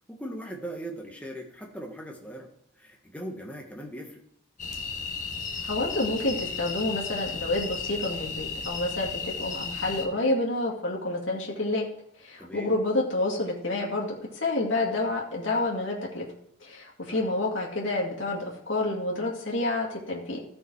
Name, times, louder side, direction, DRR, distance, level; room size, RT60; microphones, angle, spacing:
voice 1, 0.1-2.5 2.8-4.2 12.4-12.8 17.0-17.3, right 1 dB, 5° left, 1 dB, 1.6 m, -39 dB
sound 1, 4.6-10.0, left 5 dB, 35° left, 1.5 m, -34 dB
voice 2, 5.6-11.9 12.2-16.2 16.6-20.4, left 2 dB, 60° left, -3 dB, 2.3 m, -29 dB
14.5 x 6.0 x 4.7 m, 0.76 s
head